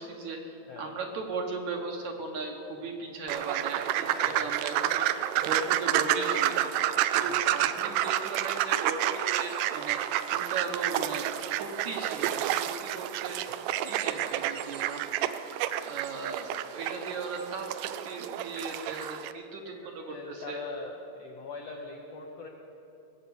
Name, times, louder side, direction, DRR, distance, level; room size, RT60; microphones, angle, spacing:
voice 1, 0.0-15.3 15.8-17.7 18.0-20.6, right 3 dB, 65° right, 2 dB, 2.2 m, -37 dB
sound 1, 3.3-19.3, right 12 dB, 80° right, 1.9 m, -30 dB
voice 2, 4.0-4.6 7.1-7.5 13.4-14.0 19.6-19.7 20.1-22.5, left 3 dB, 70° left, 1 dB, 1.5 m, -42 dB
20.0 x 7.5 x 8.4 m, 2.9 s
omnidirectional pair, 4.2 m